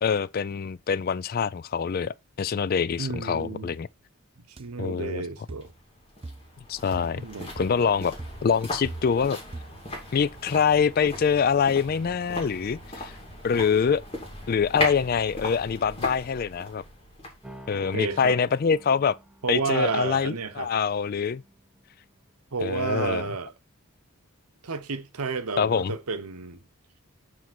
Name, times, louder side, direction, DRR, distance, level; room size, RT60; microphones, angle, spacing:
voice 1, 0.0-3.9 4.8-5.2 6.7-7.2 7.6-8.1 8.4-9.4 10.1-13.1 13.4-14.0 14.5-16.8 17.7-19.2 19.5-21.4 22.6-23.2 25.6-25.9, left 6 dB, 40° left, 0.3 m, -25 dB
voice 2, 3.0-3.7 4.5-5.7 7.2-7.9 17.7-18.4 19.4-20.7 22.5-23.5 24.6-26.6, right 4 dB, 85° right, 0.9 m, -31 dB
sound 1, 4.6-4.7 5.5-5.8 6.2-6.6 6.9-7.2 7.6-7.9 8.2-9.3 9.5-9.9, right 2 dB, 25° right, 0.4 m, -41 dB
sound 2, 5.6-18.8 19.1-19.2, left 1 dB, 25° left, 3.1 m, -38 dB
sound 3, 17.4-22.4, right 1 dB, 5° right, 0.9 m, -50 dB
7.2 x 4.4 x 6.1 m
head